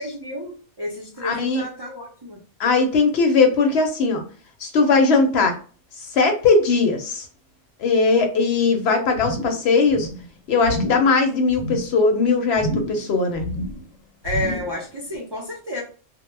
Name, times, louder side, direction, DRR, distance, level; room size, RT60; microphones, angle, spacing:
voice 1, 0.0-2.4 14.2-15.8, left 1 dB, 35° right, -3 dB, 0.4 m, -31 dB
voice 2, 1.2-1.6 2.6-4.2 4.6-5.5 6.0-7.3 7.8-10.1 10.5-13.4, left 4 dB, 65° left, 4 dB, 0.7 m, -19 dB
sound 1, 9.2-9.7 9.9-10.3 10.6-11.1 11.5-11.9 12.5-13.1 13.3-13.9 14.2-14.8 15.1-15.2, left 1 dB, 90° left, 1.0 m, -29 dB
2.1 x 2.0 x 3.1 m, 0.39 s
omnidirectional pair, 1.3 m